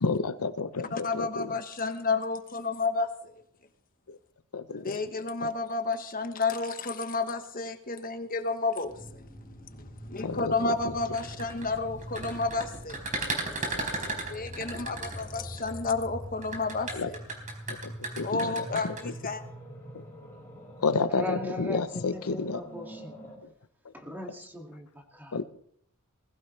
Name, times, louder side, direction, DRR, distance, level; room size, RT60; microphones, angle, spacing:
voice 1, 0.0-1.3 4.5-4.9 10.2-10.5 17.0-17.1 18.2-18.3 20.8-22.6 25.3-25.4, left 4 dB, 90° left, 12 dB, 0.8 m, -29 dB
voice 2, 0.9-3.1 4.7-9.2 10.1-13.0 14.3-17.2 18.2-19.4, left 3 dB, 40° left, 7 dB, 1.2 m, -31 dB
sound 1, 8.8-23.4, equal, 10° left, 5.6 m, -44 dB
sound 2, 11.0-15.7 16.4-19.0, right 3 dB, 35° right, 4.1 m, -35 dB
voice 3, 21.1-21.8 22.1-23.3 23.9-25.4, left 1 dB, 10° right, 2 dB, 2.2 m, -39 dB
20.5 x 15.5 x 3.3 m, 0.66 s
head